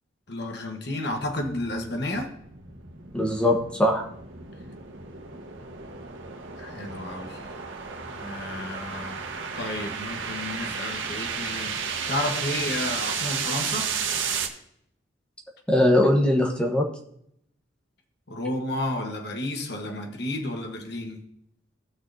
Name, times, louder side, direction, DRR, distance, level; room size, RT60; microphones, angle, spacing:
voice 1, 0.3-2.3 6.6-7.4 8.1-9.2 9.5-11.8 12.1-13.9 18.3-21.2, left 1 dB, 60° left, 1.3 m, -32 dB
sound 1, 1.1-14.5, right 6 dB, 80° right, 1.4 m, -33 dB
voice 2, 3.1-4.1 15.7-16.9, left 1 dB, 5° left, 1.2 m, -21 dB
17.5 x 6.3 x 2.8 m
head